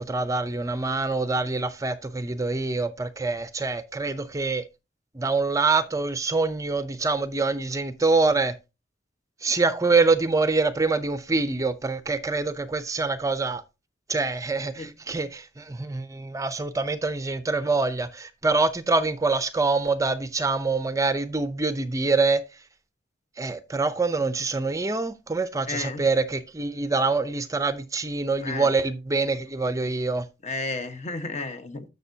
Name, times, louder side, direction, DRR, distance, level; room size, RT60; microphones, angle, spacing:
voice 1, 0.0-4.6 5.2-8.5 9.4-13.6 14.1-22.4 23.4-30.2, right 3 dB, 20° right, 0.5 m, -25 dB
voice 2, 25.7-26.0 28.4-28.7 30.4-31.8, left 3 dB, 40° left, 1.2 m, -32 dB
11.0 x 6.7 x 2.7 m
head